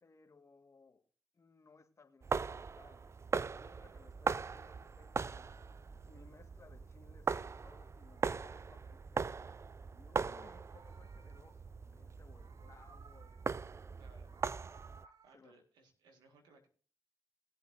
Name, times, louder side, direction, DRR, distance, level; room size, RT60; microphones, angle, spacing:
voice 1, 0.0-1.0 1.3-9.3 9.9-14.4 15.0-15.6, left 4 dB, 45° left, 5 dB, 1.8 m, -63 dB
sound 1, 2.2-15.1, right 5 dB, 40° right, 0.4 m, -40 dB
Meow, 5.0-7.5 7.8-9.5 10.3-11.9 12.2-13.7 14.0-15.3, right 6 dB, 60° right, 0.8 m, -65 dB
voice 2, 14.0-14.3 15.2-16.7, right 3 dB, 85° right, 5 dB, 1.8 m, -64 dB
19.5 x 7.9 x 2.7 m, 0.41 s
supercardioid pair, 40°, 7 cm